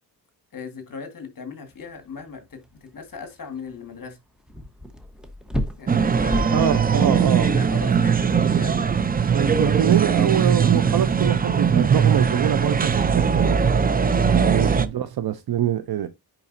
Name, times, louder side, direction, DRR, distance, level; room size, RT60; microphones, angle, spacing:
voice 1, 0.5-4.2 5.8-8.9 14.3-14.5, left 5 dB, 55° left, 1.8 m, -37 dB
sound 1, 1.7-11.6, left 1 dB, ahead, 1.1 m, -36 dB
sound 2, 5.9-14.9, right 6 dB, 25° right, 0.5 m, -20 dB
voice 2, 6.5-7.5 9.3-13.6 14.4-16.1, right 10 dB, 65° right, 0.7 m, -24 dB
9.9 x 4.0 x 2.6 m
wide cardioid pair, 120°, 39 cm